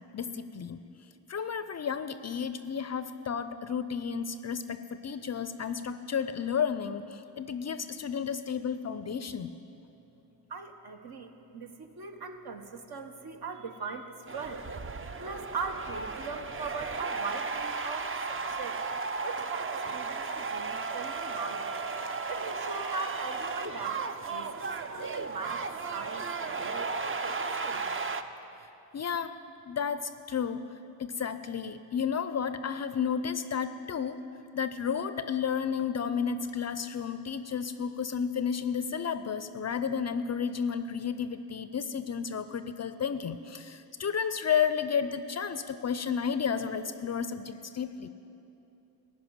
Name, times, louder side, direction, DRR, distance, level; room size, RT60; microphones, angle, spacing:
voice 1, 0.1-0.8 1.3-9.5 28.9-29.3 29.7-30.6 31.0-34.2 34.5-48.1, left 7 dB, 35° left, 12 dB, 0.5 m, -32 dB
voice 2, 10.5-14.6 15.2-18.8 19.2-21.7 22.3-24.7 24.9-28.0, right 4 dB, 55° right, 5 dB, 1.2 m, -40 dB
sound 1, 14.3-28.2, right 4 dB, 25° right, 0.7 m, -35 dB
13.5 x 5.4 x 9.3 m, 2.8 s
supercardioid pair, 50°, 46 cm